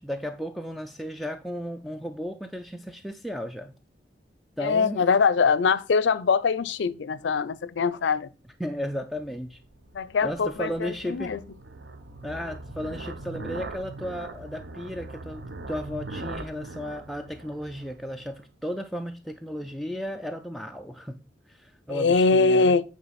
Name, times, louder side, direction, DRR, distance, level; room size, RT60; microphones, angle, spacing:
voice 1, 0.0-3.7 4.6-5.1 8.6-9.6 10.2-11.3 12.2-21.2 21.5-22.8, equal, ahead, 0.3 m, -34 dB
voice 2, 4.6-8.3 9.9-11.4 21.9-22.8, left 4 dB, 80° left, 0.4 m, -23 dB
sound 1, 9.2-18.4, right 2 dB, 70° right, 0.7 m, -41 dB
8.8 x 3.7 x 4.1 m
head